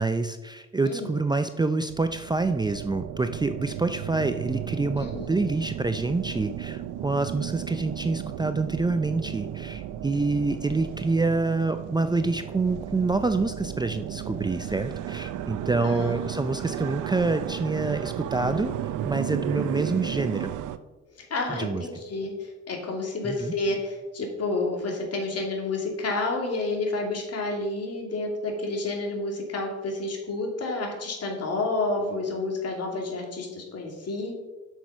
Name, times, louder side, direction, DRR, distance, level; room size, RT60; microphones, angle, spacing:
voice 1, 0.0-18.7 19.0-20.5 21.5-21.8 23.2-23.5, right 3 dB, 15° right, 9 dB, 0.5 m, -27 dB
voice 2, 0.8-1.2 5.0-5.2 15.8-16.1 21.1-34.3, left 2 dB, 55° left, 1 dB, 2.8 m, -30 dB
sound 1, 1.8-20.8, right 11 dB, 85° right, 0.6 m, -34 dB
8.0 x 6.4 x 6.1 m, 1.1 s
cardioid pair, 90°, 30 cm